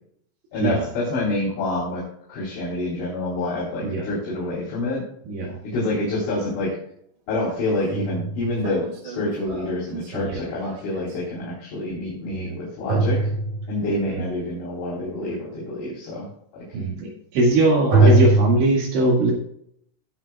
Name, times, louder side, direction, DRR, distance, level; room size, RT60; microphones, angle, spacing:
voice 1, 0.5-2.0 2.3-5.0 5.6-6.8 7.3-13.2 13.7-16.3 16.5-16.6 18.0-18.3, left 2 dB, 70° left, -6 dB, 5.9 m, -27 dB
voice 2, 5.3-5.6 10.3-10.4 12.3-12.5 16.7-19.3, right 2 dB, 70° right, -2 dB, 4.2 m, -21 dB
sound 1, 6.5-6.6 7.5-11.2 12.9-14.0 17.9-18.6, right 2 dB, 45° right, 3.0 m, -22 dB
18.0 x 7.5 x 2.3 m, 0.69 s
omnidirectional pair, 5.7 m